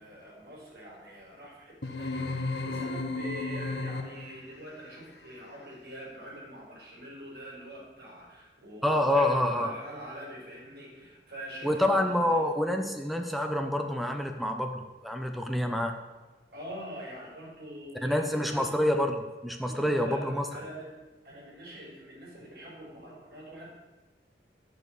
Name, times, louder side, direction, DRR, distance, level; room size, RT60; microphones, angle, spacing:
voice 1, 0.0-12.4 16.5-18.7 19.6-21.0 21.2-23.7, equal, 65° right, -4 dB, 5.1 m, -44 dB
sound 1, 1.8-4.4, left 3 dB, 75° left, 1.2 m, -33 dB
voice 2, 8.8-9.8 11.6-15.9 18.0-19.2 19.4-20.4, left 1 dB, ahead, 4 dB, 0.9 m, -27 dB
11.5 x 6.8 x 8.3 m, 1.2 s
head